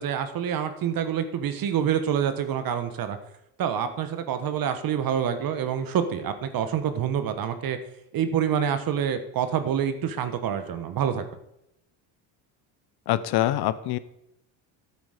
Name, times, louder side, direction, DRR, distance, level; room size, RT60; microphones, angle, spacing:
voice 1, 0.0-3.2 3.6-7.8 8.1-11.3, right 8 dB, 45° right, 9 dB, 1.3 m, -27 dB
voice 2, 13.1-14.0, left 13 dB, 55° left, 16 dB, 0.9 m, -24 dB
13.0 x 8.7 x 5.0 m, 0.83 s
cardioid pair, 115°, 46 cm